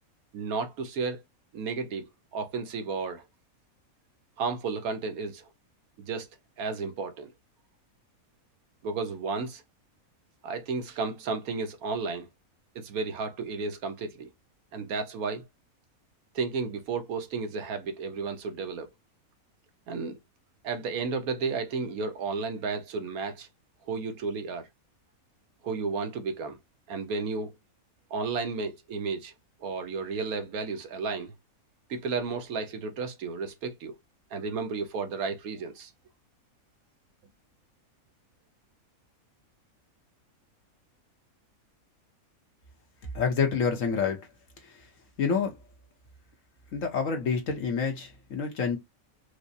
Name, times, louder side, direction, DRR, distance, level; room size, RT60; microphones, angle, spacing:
voice 1, 0.3-1.2 1.5-3.2 4.4-5.4 6.1-6.3 6.6-7.3 8.8-9.6 10.4-12.3 12.7-14.3 14.7-15.4 16.3-18.9 19.9-20.2 20.6-23.5 23.8-24.7 25.6-26.6 26.9-27.5 28.1-29.3 29.6-31.3 31.9-33.9 34.3-35.9, right 4 dB, 80° right, 1.3 m, -33 dB
voice 2, 43.1-44.2 45.2-45.5 46.7-48.8, left 5 dB, 65° left, 1.3 m, -27 dB
4.7 x 2.1 x 2.6 m
omnidirectional pair, 1.5 m